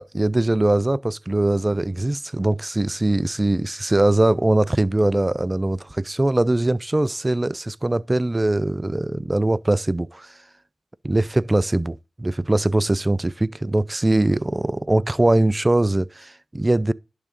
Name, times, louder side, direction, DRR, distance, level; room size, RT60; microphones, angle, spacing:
voice 1, 0.0-10.3 11.0-16.9, right 2 dB, 20° right, 0.4 m, -21 dB
11.0 x 3.7 x 6.5 m
cardioid pair, 50°, 0 cm